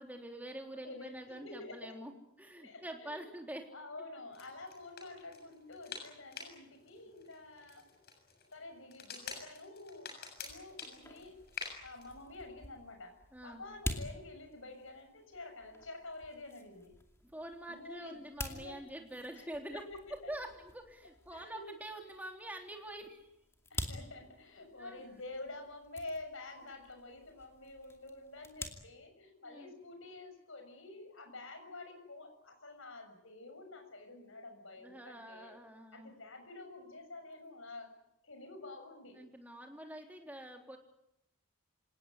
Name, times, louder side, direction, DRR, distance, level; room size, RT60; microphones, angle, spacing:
voice 1, 0.0-2.1 2.4-3.7 13.3-13.6 17.2-19.8 20.3-23.3 24.8-25.0 29.4-29.7 34.8-36.1 39.1-40.8, right 1 dB, 5° right, 3 dB, 3.5 m, -46 dB
voice 2, 0.8-2.0 2.6-3.2 3.7-7.9 8.5-10.1 10.4-11.3 11.8-16.9 17.7-18.8 19.3-19.5 19.7-20.3 21.3-21.7 23.7-35.6 35.9-37.9 38.2-39.2, left 2 dB, 65° left, 5 dB, 6.7 m, -49 dB
sound 1, 4.3-12.1, left 5 dB, 45° left, 7.1 m, -49 dB
sound 2, 10.4-28.7, left 1 dB, 10° left, 2.5 m, -48 dB
27.0 x 18.5 x 9.7 m, 0.82 s
head